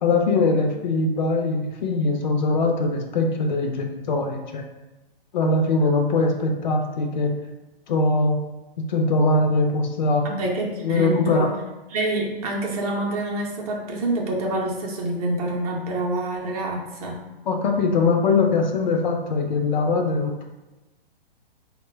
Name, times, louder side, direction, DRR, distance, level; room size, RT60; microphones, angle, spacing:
voice 1, 0.0-4.6 5.3-7.3 7.9-8.4 8.9-10.3 10.8-11.5 17.5-20.3, left 3 dB, 50° left, 3 dB, 0.5 m, -21 dB
voice 2, 10.2-11.5 11.9-17.2, right 2 dB, 40° right, -1 dB, 0.6 m, -27 dB
2.9 x 2.2 x 3.3 m, 1.1 s
hypercardioid pair, 130°, 29 cm